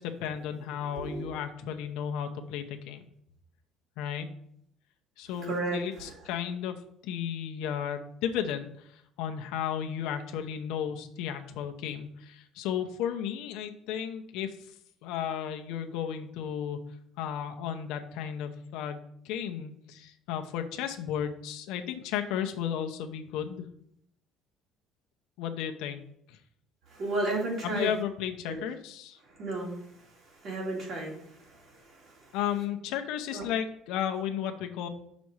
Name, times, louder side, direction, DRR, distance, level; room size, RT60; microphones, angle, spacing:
voice 1, 0.0-3.0 4.0-4.3 5.2-14.7 15.0-16.8 17.2-23.7 25.4-26.4 27.6-29.2 32.3-34.9, left 9 dB, 75° left, 5 dB, 0.8 m, -34 dB
voice 2, 0.9-1.3 5.4-6.1 26.9-27.9 28.5-28.6 29.3-32.4 33.3-33.5, right 2 dB, 40° right, -1 dB, 2.2 m, -34 dB
6.1 x 4.2 x 6.3 m, 0.69 s
cardioid pair, 170°, 0 cm